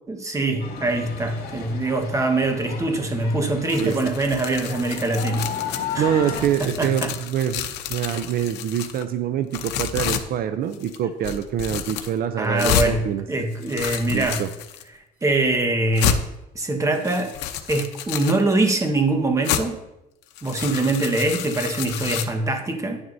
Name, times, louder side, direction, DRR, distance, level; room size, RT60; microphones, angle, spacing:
voice 1, 0.1-5.5 5.9-6.1 6.6-7.1 12.4-14.4 15.2-16.2 16.5-17.3 17.7-19.8 20.4-23.0, right 2 dB, 20° right, 5 dB, 1.3 m, -23 dB
sound 1, 0.6-6.4, left 5 dB, 70° left, 2.5 m, -34 dB
sound 2, 3.7-6.0 6.2-9.0 9.5-10.2 10.7-11.0 11.2-12.1 12.6-12.9 13.5-14.8 15.4-15.5 16.0-16.2 16.9-18.4 19.4-19.6 20.2-22.2, left 10 dB, 85° left, 0.7 m, -29 dB
voice 2, 6.0-13.2 14.1-14.5, right 9 dB, 60° right, 10 dB, 0.6 m, -25 dB
10.0 x 9.5 x 2.7 m, 0.91 s
cardioid pair, 110°, 17 cm